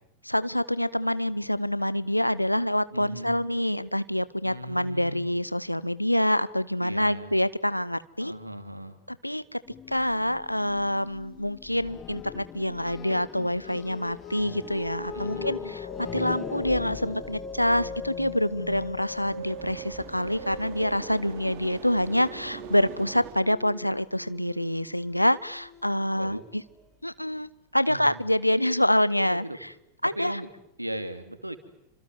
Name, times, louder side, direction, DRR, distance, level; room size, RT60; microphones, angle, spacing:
voice 1, 0.2-8.3 9.1-9.6 9.9-26.6 27.0-29.7 30.0-30.4, left 1 dB, 90° left, 17 dB, 1.0 m, -26 dB
voice 2, 2.9-3.3 4.4-5.2 6.8-7.4 8.2-9.0 15.1-15.8 26.1-26.4 27.9-28.2 29.2-29.6 30.2-30.5 30.8-31.6, right 1 dB, 85° right, 10 dB, 2.7 m, -37 dB
sound 1, 9.7-20.6, left 9 dB, 25° left, 1.0 m, -42 dB
sound 2, 13.9-26.7, left 2 dB, 10° left, 7.0 m, -41 dB
sound 3, 17.6-23.3, right 9 dB, 45° right, 5.5 m, -44 dB
28.5 x 26.0 x 7.9 m, 0.81 s
figure-of-eight pair, 90°, 0 cm